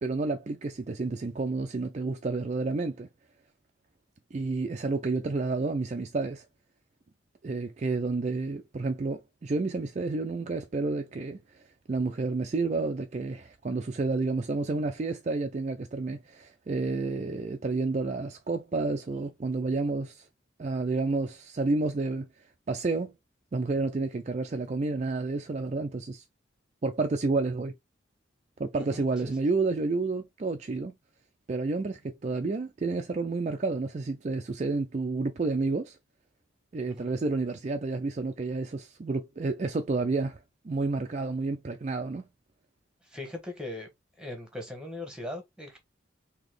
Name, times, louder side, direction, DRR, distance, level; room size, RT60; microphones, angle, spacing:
voice 1, 0.0-3.1 4.3-6.4 7.4-11.6 11.9-20.3 20.6-22.3 22.7-23.1 23.5-26.2 26.8-27.7 28.6-30.9 31.5-36.0 36.7-40.4 40.6-42.3, right 3 dB, 35° right, 0.4 m, -30 dB
voice 2, 28.7-29.3 36.9-37.1 43.1-43.9 44.2-45.8, left 1 dB, 5° right, 1.2 m, -39 dB
4.0 x 2.9 x 3.2 m
head